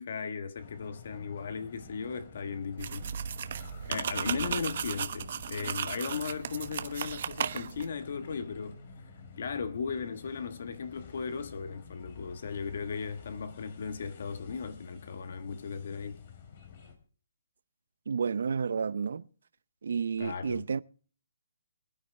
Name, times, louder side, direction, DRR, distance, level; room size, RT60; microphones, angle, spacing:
voice 1, 0.0-3.3 3.9-8.8 9.4-16.2 20.2-20.6, left 5 dB, 60° left, 1.4 m, -37 dB
sound 1, 0.6-17.0, left 5 dB, 45° left, 3.1 m, -51 dB
sound 2, 2.8-7.9, right 8 dB, 55° right, 1.1 m, -35 dB
voice 2, 18.1-19.2 19.8-20.8, right 6 dB, 75° right, 0.7 m, -31 dB
25.0 x 9.5 x 3.3 m
hypercardioid pair, 160°, 0 cm